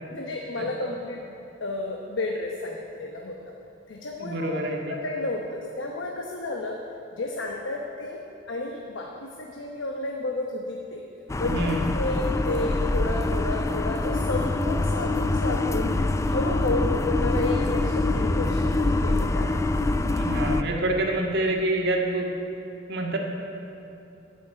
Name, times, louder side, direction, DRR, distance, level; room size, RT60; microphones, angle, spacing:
voice 1, 0.1-3.4 3.9-4.6 4.9-6.8 7.2-8.2 8.5-11.0 11.4-15.9 16.2-19.5, left 2 dB, 80° left, 1 dB, 1.0 m, -31 dB
voice 2, 4.2-4.9 11.4-11.9 20.1-22.3 22.9-23.2, right 1 dB, 60° right, 0 dB, 1.8 m, -27 dB
sound 1, 11.3-20.6, left 2 dB, 15° left, 0.3 m, -25 dB
13.5 x 6.2 x 9.1 m, 3.0 s
head